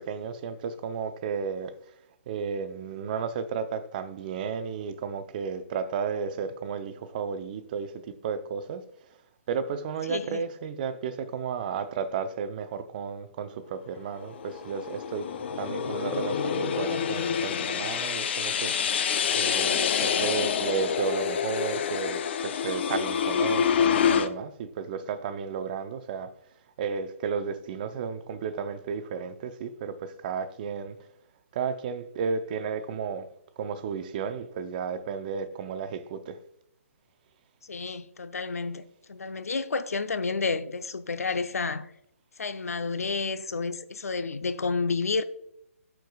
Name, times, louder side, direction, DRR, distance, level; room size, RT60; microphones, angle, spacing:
voice 1, 0.0-1.7 2.3-9.2 9.5-15.3 15.6-18.9 19.4-26.3 26.8-31.0 31.5-36.4, right 6 dB, 35° right, 0.6 m, -33 dB
voice 2, 10.1-10.4 37.6-38.8 39.1-41.9 42.4-45.2, left 4 dB, 90° left, 0.6 m, -30 dB
sound 1, 14.2-24.3, left 7 dB, 45° left, 0.5 m, -27 dB
13.0 x 4.7 x 2.3 m
hypercardioid pair, 150°, 8 cm